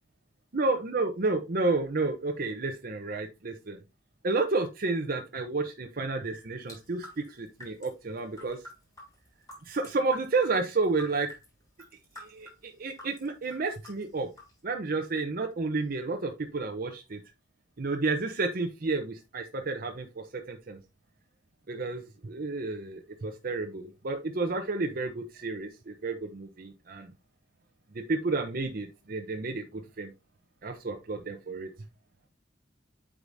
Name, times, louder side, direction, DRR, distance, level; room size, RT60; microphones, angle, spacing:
voice 1, 0.5-3.8 4.2-8.6 9.7-11.3 12.2-14.3 14.6-17.2 17.8-20.1 20.3-20.8 21.7-27.1 28.1-30.1 30.6-31.7, right 3 dB, 50° right, 4 dB, 0.7 m, -31 dB
sound 1, 6.7-11.5 11.8-14.6, left 1 dB, 20° left, 4.6 m, -48 dB
8.3 x 4.9 x 2.6 m, 0.26 s
head